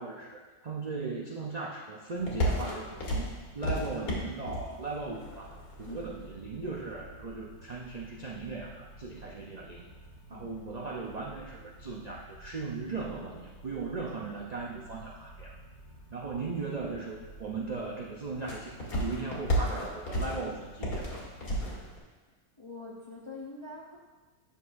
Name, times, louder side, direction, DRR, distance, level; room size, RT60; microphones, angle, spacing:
voice 1, 0.0-9.9 10.3-15.6 16.1-21.2, right 3 dB, 70° right, -2 dB, 0.4 m, -38 dB
sound 1, 2.1-22.0, equal, 70° left, 2.0 m, -38 dB
voice 2, 22.6-24.0, left 3 dB, 35° left, -3 dB, 0.4 m, -44 dB
9.3 x 6.3 x 2.6 m, 1.3 s
omnidirectional pair, 1.6 m